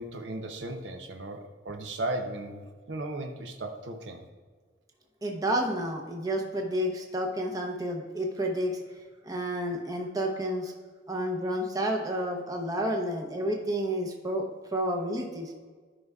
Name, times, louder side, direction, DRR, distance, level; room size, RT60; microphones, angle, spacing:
voice 1, 0.0-4.3, right 2 dB, 70° right, 5 dB, 0.7 m, -36 dB
voice 2, 5.2-8.8 9.2-10.7 11.1-14.4 14.7-15.5, equal, 20° right, 1 dB, 0.8 m, -30 dB
13.0 x 5.4 x 2.4 m, 1.5 s
head